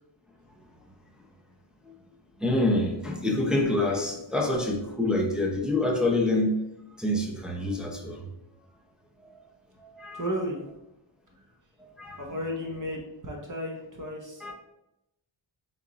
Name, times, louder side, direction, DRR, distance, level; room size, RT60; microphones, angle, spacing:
voice 1, 2.4-6.6 7.0-8.2 9.8-10.2 11.8-12.2 14.4-14.5, left 2 dB, ahead, -1 dB, 0.6 m, -26 dB
voice 2, 10.1-10.6 12.2-14.5, equal, 40° right, -1 dB, 0.9 m, -33 dB
3.5 x 3.0 x 3.8 m, 0.90 s
cardioid pair, 70°, 48 cm